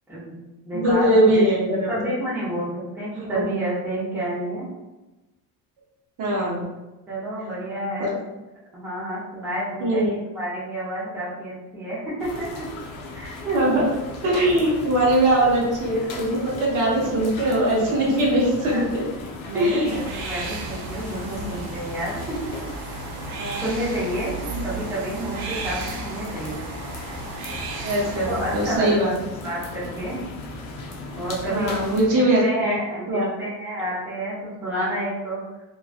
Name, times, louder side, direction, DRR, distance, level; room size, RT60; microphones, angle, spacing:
voice 1, 0.1-0.4 0.7-1.5 1.9-4.6 7.1-8.2 8.7-12.6 13.1-13.6 18.6-18.8 19.4-22.4 23.6-24.3 24.6-26.7 28.1-29.2 29.4-30.2 31.1-35.4, right 1 dB, 5° right, -10 dB, 0.6 m, -29 dB
voice 2, 0.7-2.0 3.3-3.4 6.2-6.7 8.0-8.1 9.8-10.1 13.5-13.9 14.2-19.1 19.5-20.0 23.4-23.7 24.4-24.6 27.8-29.1 31.5-32.8 33.1-33.3, right 1 dB, 55° right, -3 dB, 0.7 m, -21 dB
sound 1, 12.2-32.1, left 1 dB, 55° left, 0.6 m, -37 dB
sound 2, 19.8-28.8, right 3 dB, 85° right, 0.6 m, -35 dB
2.4 x 2.3 x 2.4 m, 1.1 s
cardioid pair, 175°, 38 cm